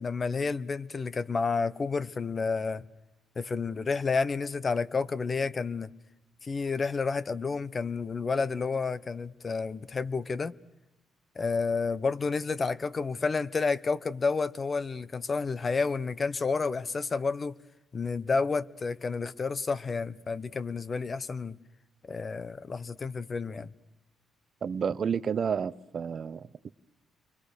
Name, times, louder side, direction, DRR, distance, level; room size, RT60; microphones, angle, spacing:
voice 1, 0.0-2.9 3.4-5.9 6.4-10.5 11.4-17.5 17.9-21.6 22.0-23.7, left 4 dB, 35° left, 0.9 m, -30 dB
voice 2, 24.6-26.7, right 7 dB, 50° right, 0.8 m, -31 dB
29.0 x 24.0 x 6.6 m
cardioid pair, 90°, 0 cm